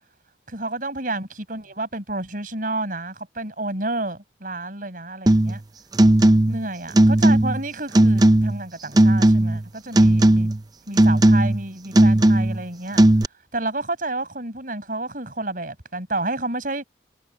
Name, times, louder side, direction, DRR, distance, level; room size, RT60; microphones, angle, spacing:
voice 1, 0.5-5.6 6.5-10.5 10.9-13.0 13.5-16.8, right 2 dB, 50° right, 6.0 m, -30 dB
sound 1, 5.3-5.6 5.9-6.6 6.9-7.6 7.9-8.6 9.0-9.7 9.9-10.6 11.0-11.6 11.9-12.6 13.0-13.2, right 1 dB, 20° right, 0.6 m, -16 dB
head